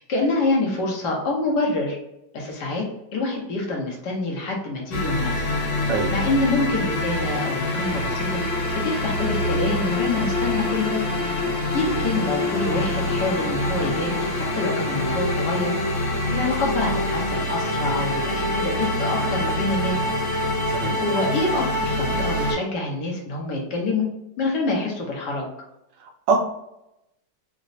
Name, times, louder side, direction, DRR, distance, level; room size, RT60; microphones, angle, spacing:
voice 1, 0.1-2.0 2.3-2.8 3.1-5.3 6.1-8.4 8.8-11.0 11.7-15.7 16.3-20.0 21.0-24.1 24.4-25.5, left 2 dB, 70° left, -1 dB, 1.5 m, -26 dB
sound 1, 4.9-22.5, left 1 dB, 50° left, 1.2 m, -25 dB
voice 2, 20.7-21.0 26.0-26.4, right 4 dB, 80° right, 3 dB, 1.3 m, -23 dB
3.9 x 2.1 x 2.6 m, 0.85 s
omnidirectional pair, 1.9 m